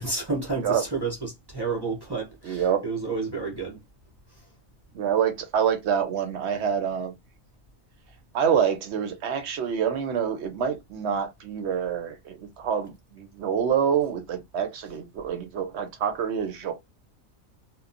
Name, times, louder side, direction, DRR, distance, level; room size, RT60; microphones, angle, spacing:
voice 1, 0.0-3.8, right 4 dB, 25° right, 0.5 m, -30 dB
voice 2, 2.4-2.8 4.9-7.1 8.3-16.7, right 8 dB, 65° right, 0.8 m, -26 dB
2.9 x 2.0 x 2.5 m
omnidirectional pair, 1.4 m